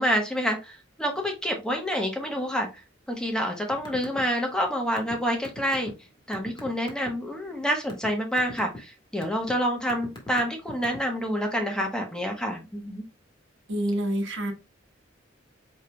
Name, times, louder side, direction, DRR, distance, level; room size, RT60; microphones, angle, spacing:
voice 1, 0.0-2.7 3.1-5.9 6.3-13.0, equal, 5° left, 1.0 m, -28 dB
sound 1, 3.7-4.2 4.5-7.1 7.6-8.1 8.4-8.8 9.2-9.5 9.9-11.2, left 2 dB, 25° left, 1.5 m, -40 dB
voice 2, 13.7-14.5, right 1 dB, 65° right, 1.3 m, -27 dB
5.1 x 4.5 x 2.2 m
head